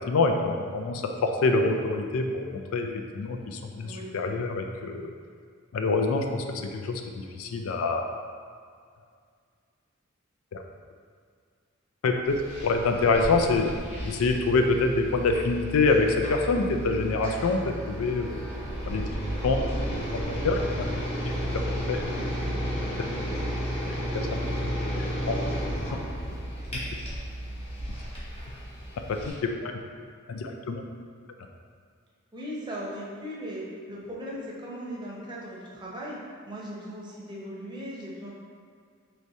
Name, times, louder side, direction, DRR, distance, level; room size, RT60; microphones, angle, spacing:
voice 1, 0.1-2.9 3.1-5.1 5.7-8.1 10.5-10.6 12.0-12.3 12.6-13.7 14.0-18.4 18.8-19.1 19.4-19.7 20.4-20.9 21.2-21.6 21.9-22.0 25.0-25.4 25.9-26.0 29.1-29.2 29.6-29.7 30.3-30.8, left 3 dB, 90° left, 4 dB, 0.4 m, -26 dB
voice 2, 3.8-4.1 32.3-36.2 36.4-38.3, equal, 20° right, -5 dB, 0.7 m, -38 dB
sound 1, 12.3-29.3, equal, 30° left, 1.1 m, -33 dB
4.7 x 3.1 x 2.7 m, 2.1 s
head